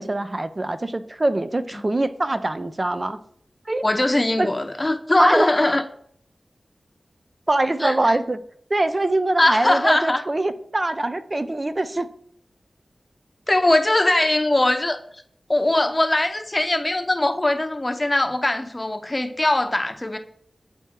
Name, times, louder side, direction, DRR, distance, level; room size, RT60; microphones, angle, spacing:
voice 1, 0.0-3.2 3.7-3.8 4.4-4.5 5.2-5.5 7.5-8.4 8.7-12.1, right 2 dB, 35° right, 0.5 m, -23 dB
voice 2, 3.8-5.8 7.8-8.2 9.4-10.2 13.5-15.0 15.5-20.2, left 1 dB, 30° left, 0.7 m, -21 dB
8.2 x 4.2 x 3.6 m
wide cardioid pair, 55°, 0 cm